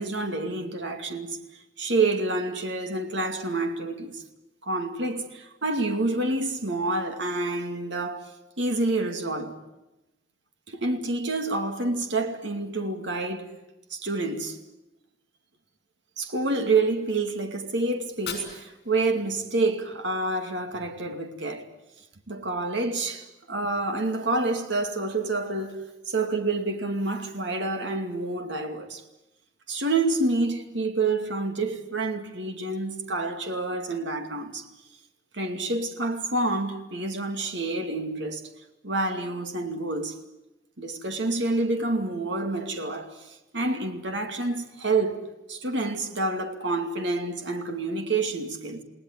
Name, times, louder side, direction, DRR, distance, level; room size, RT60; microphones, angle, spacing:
voice 1, 0.0-1.4 1.8-4.2 4.6-9.6 10.7-13.5 13.9-14.6 16.2-21.7 22.3-25.8 26.1-29.0 29.7-34.7 35.3-38.5 38.8-40.2 40.8-43.3 43.5-45.2 45.5-48.8, right 2 dB, 75° right, 2.5 m, -28 dB
Fire, 17.9-20.0, left 6 dB, 60° left, 6.5 m, -42 dB
29.0 x 18.5 x 9.7 m
head